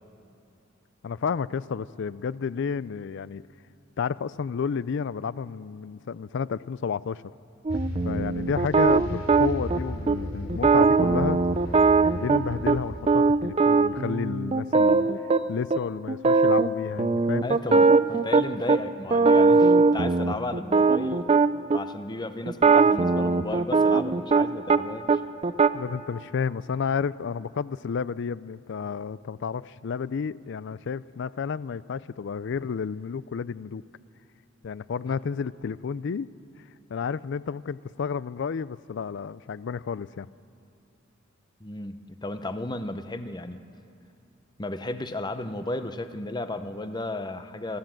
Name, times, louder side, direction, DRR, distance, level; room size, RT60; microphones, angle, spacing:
voice 1, 1.0-3.4 4.0-7.2 8.0-11.4 12.1-15.1 15.5-17.9 25.7-33.8 34.6-36.3 36.9-40.3, left 6 dB, 60° left, 19 dB, 0.4 m, -31 dB
sound 1, 7.6-9.8 10.1-10.2 10.5-12.8 13.1-15.4 15.7-15.8 16.1-16.7 17.0-18.8 19.1-21.8 22.5-24.8 25.1-25.7, right 4 dB, 30° right, 0.5 m, -20 dB
sound 2, 7.7-13.0, equal, 75° left, 3.8 m, -35 dB
voice 2, 17.4-21.3 21.7-25.2 35.1-35.2 41.6-43.6 44.6-47.8, left 2 dB, 20° left, 10 dB, 0.8 m, -34 dB
26.5 x 13.0 x 7.6 m, 2.7 s
head